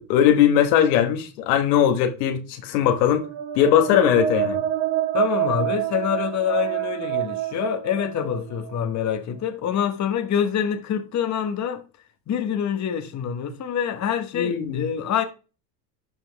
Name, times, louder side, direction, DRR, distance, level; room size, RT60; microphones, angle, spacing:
voice 1, 0.0-3.2 3.5-4.6 14.3-14.9, left 10 dB, 80° left, 1.5 m, -19 dB
sound 1, 3.0-8.7, right 12 dB, 60° right, 1.5 m, -27 dB
voice 2, 5.1-11.8 12.3-15.2, left 8 dB, 35° left, 1.4 m, -26 dB
12.0 x 4.4 x 3.4 m
supercardioid pair, 110°, 49 cm